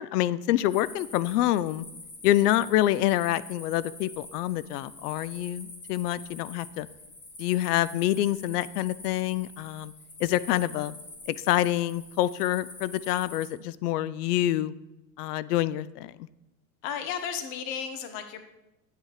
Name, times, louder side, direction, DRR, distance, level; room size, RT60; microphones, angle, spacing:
voice 1, 0.0-1.8 2.2-6.9 7.4-9.9 10.2-10.9 11.3-14.7 15.2-16.1, left 14 dB, 80° left, 18 dB, 0.6 m, -26 dB
sound 1, 0.7-13.5, left 2 dB, 25° left, 1.9 m, -46 dB
voice 2, 16.8-18.4, left 7 dB, 50° left, 8 dB, 1.3 m, -34 dB
9.1 x 6.6 x 4.7 m, 0.92 s
supercardioid pair, 120°, 46 cm